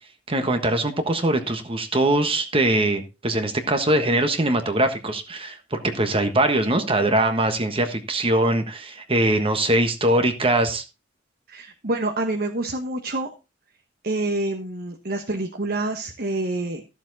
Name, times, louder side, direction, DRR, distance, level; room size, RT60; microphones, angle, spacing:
voice 1, 0.3-10.8, right 1 dB, 30° right, 7 dB, 1.4 m, -22 dB
voice 2, 11.5-13.3 14.0-16.8, right 2 dB, 55° right, 4 dB, 1.3 m, -27 dB
13.5 x 7.2 x 4.1 m, 0.28 s
head